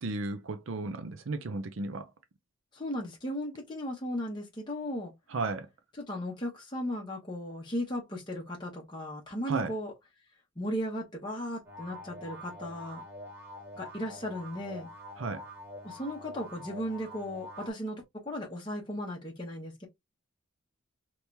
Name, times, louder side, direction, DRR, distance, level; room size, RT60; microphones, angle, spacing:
voice 1, 0.0-2.1 5.3-5.7 9.5-9.7 15.2-15.4, right 3 dB, 70° right, 0.6 m, -34 dB
voice 2, 2.7-5.1 6.0-9.9 10.6-13.0 13.8-14.9 15.8-19.9, equal, 20° left, 0.9 m, -36 dB
sound 1, 11.6-17.7, left 1 dB, 15° right, 1.4 m, -46 dB
3.0 x 2.8 x 3.4 m
head